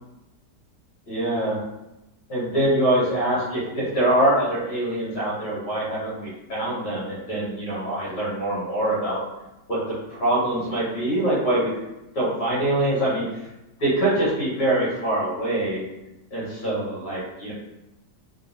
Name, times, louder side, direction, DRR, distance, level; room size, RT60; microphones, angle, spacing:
voice 1, 1.1-1.6 2.3-9.2 9.7-9.8 10.1-11.7 12.1-13.5 13.8-15.8 16.3-17.5, right 1 dB, 80° left, -8 dB, 1.8 m, -24 dB
3.7 x 2.0 x 2.5 m, 0.95 s
omnidirectional pair, 1.8 m